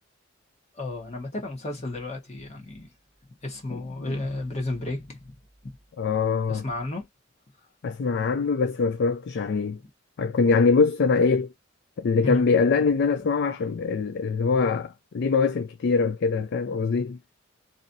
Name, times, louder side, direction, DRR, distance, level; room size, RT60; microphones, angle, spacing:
voice 1, 0.7-2.9 3.4-5.3 5.6-5.7 6.5-7.1 9.8-9.9 12.2-12.4, left 2 dB, 35° left, 1.3 m, -32 dB
voice 2, 6.0-6.6 7.8-9.8 10.2-11.5 12.0-17.2, left 4 dB, 55° left, 0.4 m, -23 dB
3.1 x 2.7 x 2.6 m
head